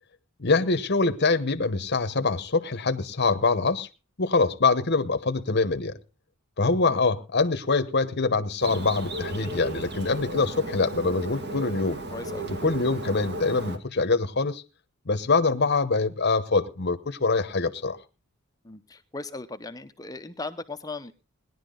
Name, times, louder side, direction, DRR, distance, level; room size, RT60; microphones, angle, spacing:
voice 1, 0.4-3.9 4.2-5.9 6.6-12.0 12.6-14.6 15.1-18.0, left 3 dB, 50° left, 9 dB, 0.9 m, -24 dB
Bird, 8.6-13.8, right 2 dB, 50° right, 1.9 m, -35 dB
voice 2, 12.1-12.5 18.6-21.1, left 3 dB, 15° left, 9 dB, 0.7 m, -37 dB
18.5 x 11.0 x 3.8 m, 0.31 s
head